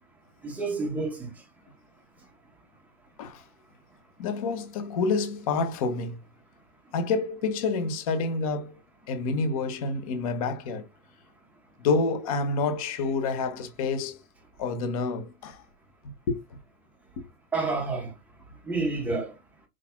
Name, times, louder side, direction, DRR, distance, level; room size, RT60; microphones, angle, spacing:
voice 1, 0.4-1.3 17.5-18.1 18.6-19.3, right 3 dB, 5° right, 0.9 m, -29 dB
voice 2, 4.2-6.2 6.9-8.8 9.1-10.8 11.8-14.2 14.6-15.6 16.3-16.4 17.2-17.3, left 4 dB, 25° left, 0.5 m, -28 dB
4.7 x 3.9 x 2.3 m
hypercardioid pair, 145°, 48 cm